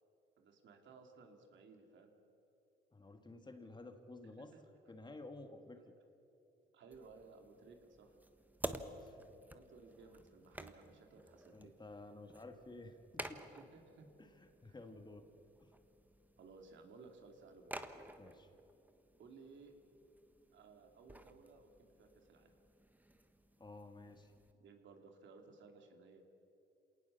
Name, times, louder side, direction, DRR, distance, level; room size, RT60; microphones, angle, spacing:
voice 1, 0.4-2.1 4.5-4.6 6.7-8.1 9.5-11.8 13.4-14.1 14.7-14.8 16.4-17.7 19.2-19.7 20.5-22.5 24.6-26.2, right 4 dB, 70° right, 3 dB, 3.1 m, -59 dB
voice 2, 2.9-4.5 4.9-6.0 8.8-9.2 11.5-13.4 14.2-15.3 15.6-15.7 18.2-18.5 23.6-24.3, left 2 dB, 20° left, 6 dB, 2.0 m, -53 dB
sound 1, 6.9-24.5, right 1 dB, 10° right, 1.3 m, -52 dB
27.0 x 19.0 x 7.0 m, 2.9 s
cardioid pair, 90°, 20 cm